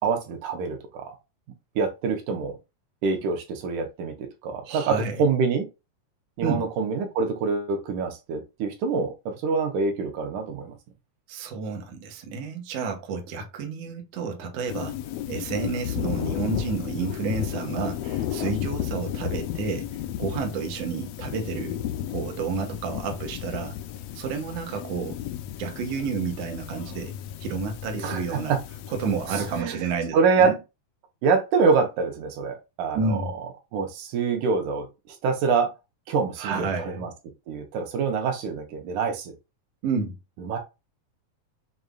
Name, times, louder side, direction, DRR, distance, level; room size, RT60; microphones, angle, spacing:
voice 1, 0.0-1.2 1.8-2.6 3.0-5.7 6.4-10.8 28.0-28.6 29.3-29.8 30.1-30.5 31.2-33.2 33.7-35.7 36.1-37.1 37.5-39.4 40.4-40.6, right 5 dB, 90° right, 2.4 m, -25 dB
voice 2, 4.7-5.2 6.4-6.6 11.3-15.0 15.3-21.8 22.1-23.8 24.2-25.2 25.6-27.1 27.4-28.6 28.9-30.6 32.9-33.3 36.4-37.1 39.8-40.2, right 4 dB, 65° right, 1.8 m, -30 dB
sound 1, 14.7-29.6, left 11 dB, 80° left, 1.4 m, -33 dB
6.8 x 2.5 x 2.3 m
omnidirectional pair, 3.4 m